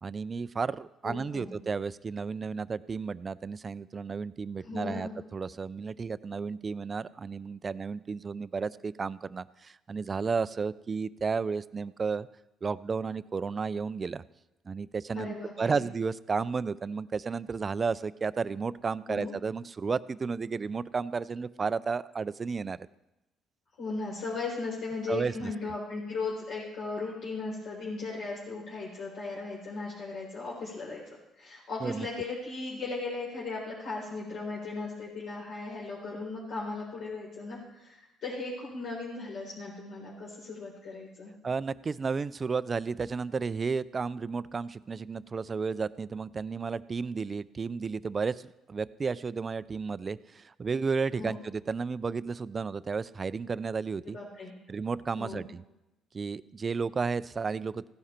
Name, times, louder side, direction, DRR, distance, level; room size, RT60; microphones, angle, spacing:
voice 1, 0.0-12.3 12.6-14.2 14.7-22.9 25.1-25.5 31.8-32.1 41.4-54.2 54.7-55.6 56.1-57.9, right 5 dB, 30° right, 16 dB, 0.4 m, -33 dB
voice 2, 1.0-1.5 4.6-5.1 15.2-15.8 19.1-19.3 23.8-31.0 31.4-41.3 51.1-51.4 54.1-54.5 55.2-55.4, left 3 dB, 65° left, -5 dB, 3.9 m, -37 dB
15.5 x 11.0 x 4.4 m, 0.96 s
cardioid pair, 100°, 0 cm